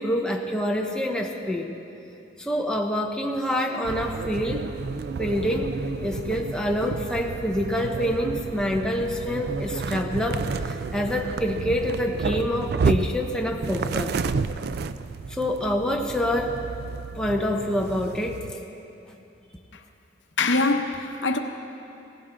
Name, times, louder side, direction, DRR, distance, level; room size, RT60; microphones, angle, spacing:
voice 1, 0.0-1.7 2.4-4.7 5.2-5.7 6.0-14.2 15.3-16.6 17.2-18.4, left 1 dB, 5° left, 0.7 m, -26 dB
sound 1, 3.8-18.5, right 4 dB, 55° right, 0.4 m, -31 dB
voice 2, 20.4-21.4, left 3 dB, 65° left, 1.0 m, -23 dB
17.0 x 16.0 x 3.8 m
head